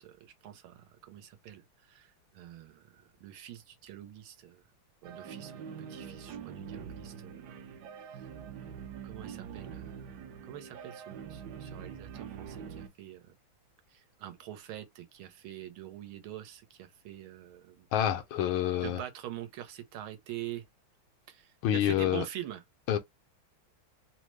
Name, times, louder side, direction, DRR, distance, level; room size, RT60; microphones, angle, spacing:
voice 1, 0.0-1.6 1.9-4.6 5.0-7.3 8.1-8.2 9.0-10.0 10.4-13.3 13.9-17.9 18.8-20.7 21.3-22.6, right 12 dB, 85° right, 1.6 m, -45 dB
sound 1, 5.0-12.9, right 7 dB, 65° right, 1.1 m, -44 dB
voice 2, 17.9-19.0 21.6-22.2 22.9-23.0, left 11 dB, 85° left, 1.5 m, -27 dB
3.8 x 2.1 x 3.0 m
omnidirectional pair, 2.3 m